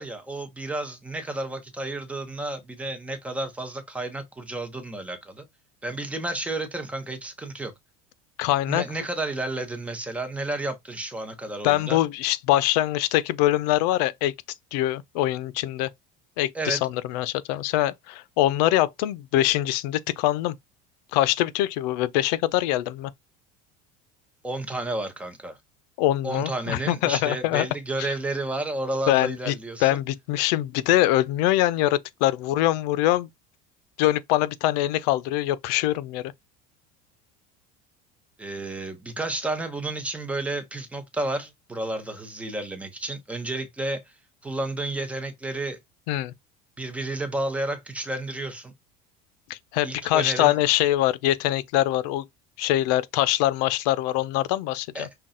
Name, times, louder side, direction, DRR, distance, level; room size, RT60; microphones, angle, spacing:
voice 1, 0.0-5.4 5.8-7.7 8.7-12.0 16.5-16.8 24.4-25.6 26.2-29.9 38.4-44.0 44.4-45.8 46.8-48.7 49.8-50.5 54.9-55.1, right 2 dB, 5° right, 0.7 m, -31 dB
voice 2, 8.4-8.8 11.6-14.3 14.7-15.9 16.4-20.5 21.1-23.1 26.0-27.7 28.0-28.1 29.1-29.6 29.8-33.3 34.0-36.3 46.1-46.3 49.5-52.2 52.6-55.1, left 15 dB, 80° left, 0.5 m, -23 dB
5.7 x 2.2 x 3.7 m
cardioid pair, 170°, 21 cm